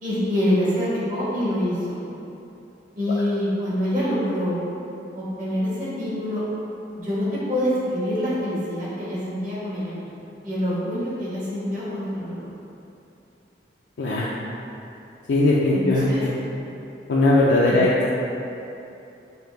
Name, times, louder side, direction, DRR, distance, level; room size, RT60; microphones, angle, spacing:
voice 1, 0.0-2.0 3.0-4.6 5.1-6.4 7.0-10.0 10.4-12.4 15.7-16.2 17.7-17.8, equal, 45° right, -9 dB, 1.2 m, -25 dB
voice 2, 14.0-14.3 15.3-16.3 17.1-18.1, left 2 dB, 80° left, -6 dB, 0.4 m, -19 dB
5.5 x 2.2 x 3.3 m, 2.8 s
head